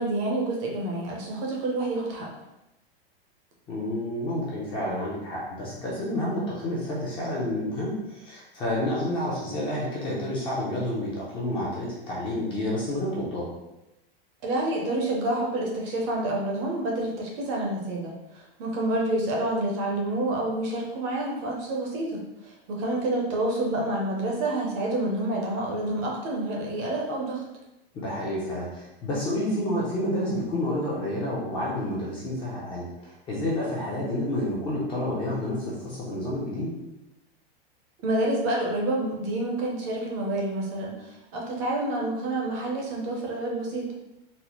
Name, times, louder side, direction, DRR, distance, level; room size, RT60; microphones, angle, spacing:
voice 1, 0.0-2.3 14.4-27.4 38.0-43.9, right 1 dB, 30° right, -1 dB, 0.6 m, -28 dB
voice 2, 3.7-13.5 27.9-36.7, left 1 dB, 15° left, -5 dB, 0.5 m, -29 dB
4.0 x 2.0 x 2.9 m, 0.91 s
supercardioid pair, 165°, 30 cm